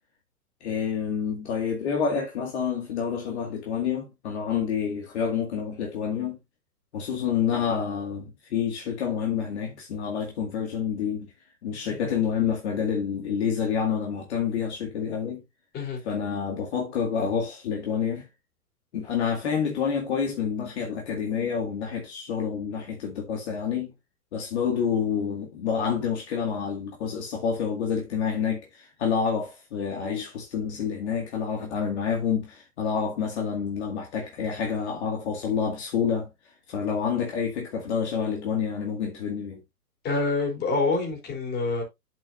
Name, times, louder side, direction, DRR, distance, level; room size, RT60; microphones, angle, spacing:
voice 1, 0.6-6.4 6.9-11.3 11.6-15.4 16.0-18.3 18.9-23.9 24.3-36.3 36.7-39.6, left 7 dB, 45° left, 2.1 m, -28 dB
voice 2, 40.0-41.8, left 3 dB, 20° left, 3.7 m, -26 dB
8.9 x 7.6 x 2.6 m
figure-of-eight pair, 120°, 45 cm